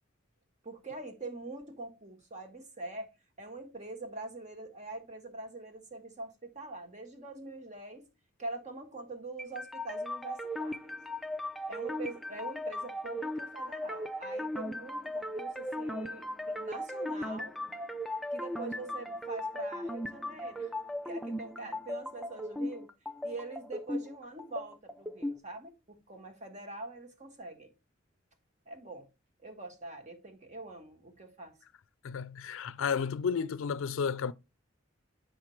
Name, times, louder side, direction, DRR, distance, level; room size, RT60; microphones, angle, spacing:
voice 1, 0.6-8.1 8.4-11.0 11.7-17.6 18.3-20.7 21.0-22.9 23.2-27.7 28.7-29.1 29.4-31.6, right 2 dB, 35° right, 1.3 m, -44 dB
sound 1, 9.4-25.4, left 1 dB, ahead, 0.4 m, -37 dB
voice 2, 32.0-34.3, left 6 dB, 85° left, 0.4 m, -32 dB
8.0 x 5.9 x 3.1 m
head